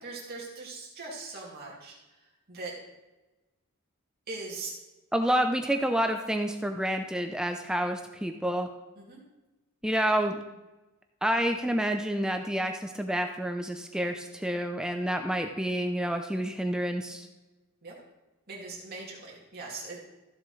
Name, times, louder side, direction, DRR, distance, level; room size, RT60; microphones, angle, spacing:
voice 1, 0.0-2.2 2.5-2.7 4.3-4.7 9.0-9.2 17.8-18.0 18.5-20.0, right 3 dB, 50° right, -4 dB, 2.4 m, -40 dB
voice 2, 5.1-8.7 9.8-10.4 11.2-17.3, equal, 5° right, 5 dB, 0.5 m, -28 dB
14.5 x 7.2 x 3.2 m, 1.1 s
head